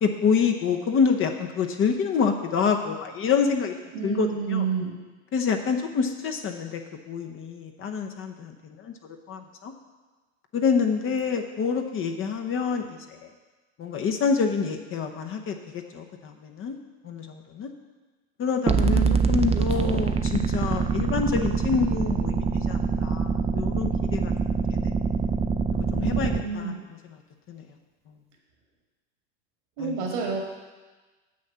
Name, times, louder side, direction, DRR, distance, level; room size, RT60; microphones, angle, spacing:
voice 1, 0.0-3.7 4.0-4.6 5.3-9.7 10.5-13.2 13.8-16.8 17.0-17.7 18.4-24.3 24.7-24.9 25.7-26.7 27.5-27.6 29.8-30.0, left 6 dB, 40° left, 5 dB, 0.9 m, -27 dB
voice 2, 3.9-5.0 18.9-20.0 25.9-26.8 29.8-30.4, right 6 dB, 70° right, 0 dB, 1.8 m, -30 dB
sound 1, 18.7-26.4, right 5 dB, 20° right, 0.5 m, -24 dB
7.3 x 6.4 x 5.6 m, 1.3 s
hypercardioid pair, 90°, 34 cm